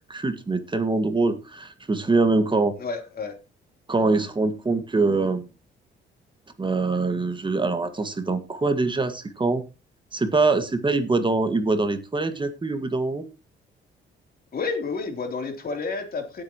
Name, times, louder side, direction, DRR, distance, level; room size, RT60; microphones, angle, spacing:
voice 1, 0.1-2.8 3.9-5.4 6.6-9.6 10.1-13.2, right 3 dB, 25° right, 8 dB, 1.7 m, -24 dB
voice 2, 2.8-3.4 14.5-16.4, left 4 dB, 50° left, 5 dB, 3.3 m, -30 dB
17.5 x 8.1 x 3.0 m, 0.28 s
cardioid pair, 90°, 20 cm